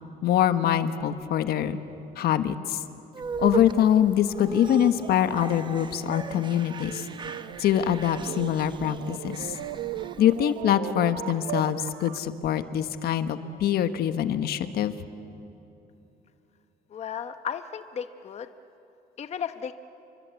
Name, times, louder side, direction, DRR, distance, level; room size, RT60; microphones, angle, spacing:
voice 1, 0.2-1.8 2.2-2.8 3.4-7.1 7.6-9.6 10.2-14.9, left 10 dB, 70° left, 10 dB, 1.3 m, -24 dB
sound 1, 3.1-10.5, right 5 dB, 25° right, 1.2 m, -37 dB
sound 2, 5.0-12.3, right 13 dB, 80° right, 0.9 m, -38 dB
voice 2, 16.9-18.5 19.2-19.7, left 8 dB, 40° left, 9 dB, 1.0 m, -34 dB
29.5 x 24.0 x 8.2 m, 2.9 s
cardioid pair, 110°, 17 cm